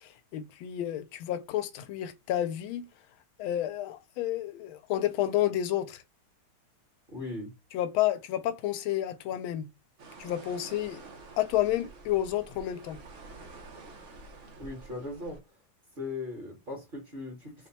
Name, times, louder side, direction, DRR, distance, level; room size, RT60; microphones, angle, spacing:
voice 1, 0.0-2.9 3.4-6.0 7.7-9.7 10.2-11.1 11.4-13.0, left 12 dB, 85° left, 1.4 m, -30 dB
voice 2, 7.1-7.5 14.6-15.4 15.9-17.7, left 2 dB, 30° right, 1.2 m, -38 dB
sound 1, 10.0-15.4, right 3 dB, 55° right, 0.8 m, -48 dB
4.6 x 2.2 x 4.1 m
omnidirectional pair, 2.2 m